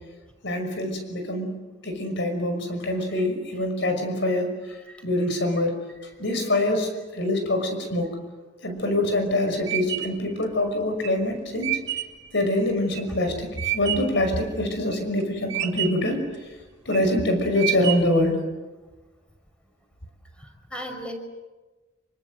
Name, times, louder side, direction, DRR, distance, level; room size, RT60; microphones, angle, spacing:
voice 1, 0.4-4.5 5.0-5.7 6.2-8.1 8.6-11.7 12.3-16.2 16.9-18.4, left 1 dB, 65° left, 6 dB, 5.8 m, -25 dB
voice 2, 2.9-3.3 4.9-5.0 20.4-21.1, equal, 5° left, 4 dB, 5.1 m, -38 dB
sound 1, 8.8-14.2 14.7-15.2 15.5-16.2 16.7-17.1 17.6-18.3, right 13 dB, 65° right, 2.4 m, -30 dB
27.0 x 24.5 x 7.8 m, 1.2 s
head